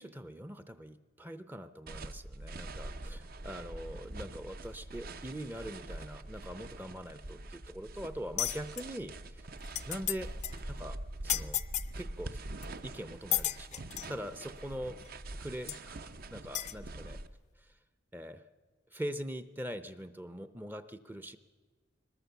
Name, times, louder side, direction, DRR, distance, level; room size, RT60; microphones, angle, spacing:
voice 1, 0.0-9.4 9.9-10.3 10.7-11.6 11.9-12.4 12.8-17.2 17.6-17.7 18.1-18.5 18.9-21.4, equal, 10° right, 11 dB, 0.6 m, -43 dB
sound 1, 1.9-17.3, right 2 dB, 50° right, 0.7 m, -44 dB
sound 2, 8.4-8.8 9.4-9.5 9.6-10.2 10.4-10.6 11.3-11.9 12.6-12.7 13.3-14.1 15.0-15.1 15.7-15.8 16.5-16.7, left 13 dB, 35° left, 0.5 m, -33 dB
21.5 x 20.0 x 6.9 m, 1.4 s
head